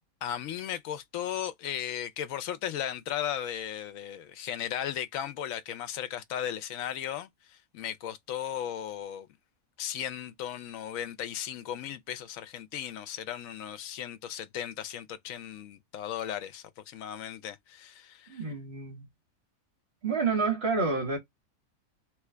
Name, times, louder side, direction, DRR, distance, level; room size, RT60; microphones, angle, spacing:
voice 1, 0.2-9.3 9.8-18.4, left 10 dB, 80° left, 1.0 m, -36 dB
voice 2, 18.3-19.1 20.0-21.2, right 4 dB, 50° right, 1.6 m, -29 dB
3.1 x 2.4 x 3.2 m
omnidirectional pair, 1.4 m